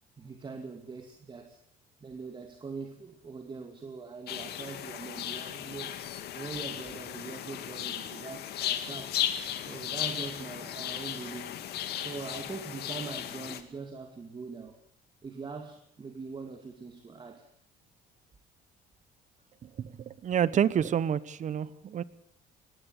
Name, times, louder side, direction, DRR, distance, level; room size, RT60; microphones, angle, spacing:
voice 1, 0.2-1.6 2.0-6.0 6.3-9.2 9.7-11.6 12.0-14.8 15.2-17.5, right 4 dB, 30° right, 5 dB, 2.5 m, -42 dB
sound 1, 4.3-13.6, left 11 dB, 70° left, 2.2 m, -36 dB
voice 2, 19.6-22.0, right 9 dB, 45° right, 18 dB, 1.2 m, -29 dB
19.5 x 16.5 x 9.0 m, 0.72 s
cardioid pair, 110°, 17 cm